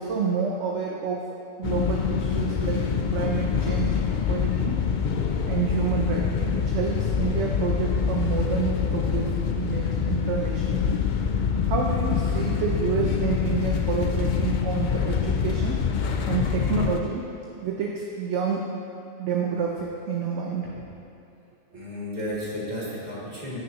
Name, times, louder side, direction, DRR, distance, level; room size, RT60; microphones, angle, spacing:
voice 1, 0.0-1.3 1.6-2.8 3.1-3.9 4.3-4.8 5.5-11.0 11.3-15.8 16.3-17.2 17.6-18.8 19.2-20.9 21.7-21.8, right 6 dB, 65° right, -1 dB, 1.0 m, -29 dB
sound 1, 1.6-17.0, left 6 dB, 85° left, 0.4 m, -25 dB
voice 2, 21.7-23.6, left 1 dB, 30° right, -7 dB, 2.2 m, -33 dB
15.0 x 6.5 x 3.0 m, 2.7 s
omnidirectional pair, 1.4 m